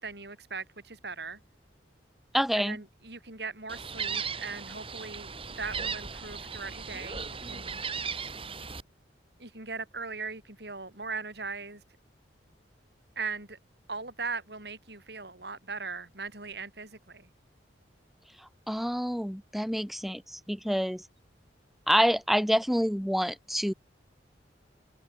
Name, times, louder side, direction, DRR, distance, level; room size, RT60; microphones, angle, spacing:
voice 1, 0.0-1.4 2.5-7.8 9.4-11.8 13.2-13.6 13.9-17.3, right 4 dB, 60° right, 5.6 m, -39 dB
voice 2, 2.3-2.8 18.4-21.0 21.9-23.7, equal, ahead, 1.4 m, -27 dB
Gull seagull, 3.7-8.8, right 5 dB, 30° right, 6.8 m, -37 dB
head